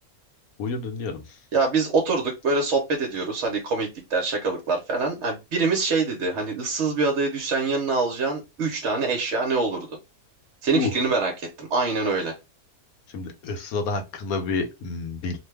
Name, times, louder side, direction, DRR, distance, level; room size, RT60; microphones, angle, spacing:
voice 1, 0.6-1.4 10.7-10.9 13.1-15.4, left 4 dB, 80° left, 1.2 m, -29 dB
voice 2, 1.5-9.9 10.6-12.3, right 4 dB, 55° right, 1.0 m, -25 dB
2.9 x 2.2 x 3.2 m
omnidirectional pair, 1.5 m